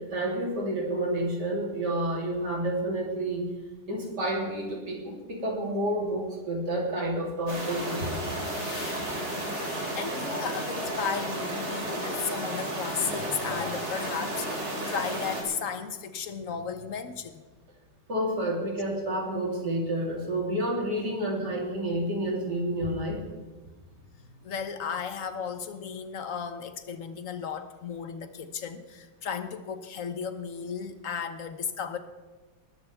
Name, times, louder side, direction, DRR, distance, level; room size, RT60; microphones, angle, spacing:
voice 1, 0.0-3.5 3.9-8.3 18.1-23.2, right 1 dB, 65° right, -2 dB, 3.7 m, -29 dB
sound 1, 7.5-15.4, right 1 dB, 35° right, 3.5 m, -33 dB
sound 2, 8.4-12.0, left 3 dB, 75° left, 3.0 m, -46 dB
voice 2, 9.8-17.4 24.4-32.0, left 7 dB, 50° left, 10 dB, 1.2 m, -34 dB
20.0 x 12.5 x 3.5 m, 1.3 s
omnidirectional pair, 2.0 m